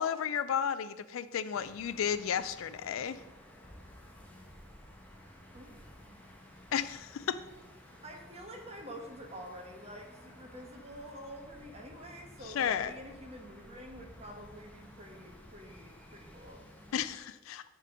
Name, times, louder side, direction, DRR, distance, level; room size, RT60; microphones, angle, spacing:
voice 1, 0.0-3.2 6.7-7.4 12.5-12.9 16.9-17.6, left 8 dB, 80° left, 14 dB, 0.4 m, -33 dB
sound 1, 1.5-17.2, left 1 dB, 10° left, 1.0 m, -54 dB
voice 2, 5.5-6.2 7.8-16.7, equal, 30° right, 2 dB, 1.2 m, -48 dB
9.2 x 3.7 x 5.0 m, 1.1 s
head